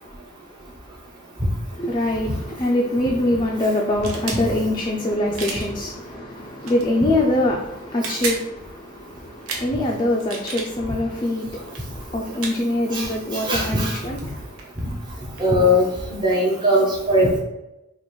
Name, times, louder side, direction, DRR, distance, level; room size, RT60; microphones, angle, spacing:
voice 1, 1.8-14.5, left 1 dB, 20° left, 0.4 m, -24 dB
sound 1, 3.9-4.4 5.3-5.7 6.6-6.8 7.8-8.4 9.4-9.7 10.2-10.7 11.6-11.8 12.4-12.6 13.9-14.0 14.2-15.5, right 4 dB, 70° right, 0.8 m, -31 dB
voice 2, 13.5-14.0 15.4-15.9 16.2-17.4, equal, 20° right, 0.7 m, -19 dB
5.1 x 2.4 x 3.1 m
head